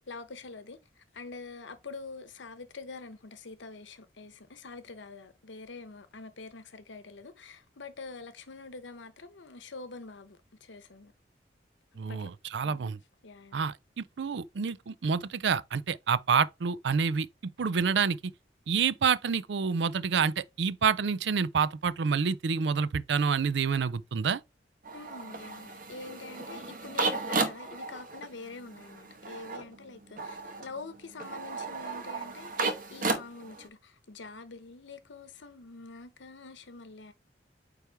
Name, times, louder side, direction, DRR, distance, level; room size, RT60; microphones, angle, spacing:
voice 1, 0.0-11.1 12.1-12.3 12.6-12.9 13.2-13.6 24.9-32.5 32.9-37.1, left 3 dB, 85° left, 0.9 m, -46 dB
voice 2, 12.0-13.0 13.5-17.3 17.6-18.2 18.7-24.4, right 6 dB, 70° right, 0.4 m, -28 dB
sound 1, 24.8-33.7, right 3 dB, 50° right, 1.1 m, -34 dB
9.1 x 3.3 x 3.4 m
head